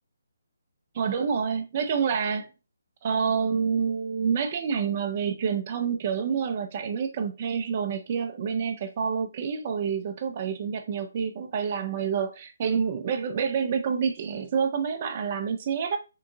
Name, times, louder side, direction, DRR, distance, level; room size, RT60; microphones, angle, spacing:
voice 1, 0.9-2.5 3.0-16.0, right 6 dB, 35° right, 0.5 m, -28 dB
3.7 x 2.6 x 2.6 m
figure-of-eight pair, 140°, 0 cm